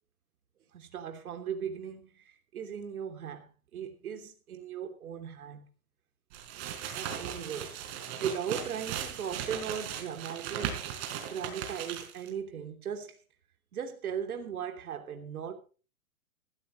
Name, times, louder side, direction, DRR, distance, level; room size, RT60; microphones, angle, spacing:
voice 1, 0.7-5.7 6.9-7.9 8.2-10.9 11.2-13.2 13.7-15.6, right 7 dB, 80° right, 3.0 m, -38 dB
sound 1, 6.3-12.3, right 9 dB, 45° right, 4.7 m, -37 dB
16.5 x 15.5 x 3.1 m
hypercardioid pair, 135°, 43 cm